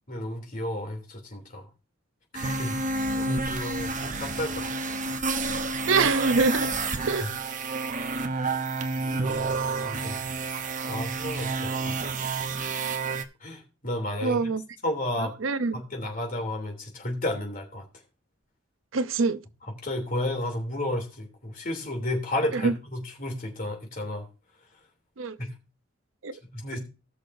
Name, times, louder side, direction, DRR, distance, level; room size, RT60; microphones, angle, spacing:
voice 1, 0.1-1.7 2.3-2.7 3.2-4.9 7.0-7.3 8.3-8.7 9.0-9.5 9.8-10.2 10.9-12.0 13.4-14.6 14.8-15.3 15.7-17.8 19.8-24.3 25.4-25.5 26.5-26.8, left 1 dB, 45° left, 3.1 m, -32 dB
sound 1, 2.3-13.2, right 3 dB, 40° right, 0.9 m, -29 dB
voice 2, 5.9-6.7 7.1-7.3 14.2-14.6 15.2-15.8 18.9-19.4 22.5-22.7 25.2-25.4 26.2-26.3 26.7-26.8, right 4 dB, 75° right, 0.6 m, -24 dB
19.0 x 6.3 x 2.7 m
head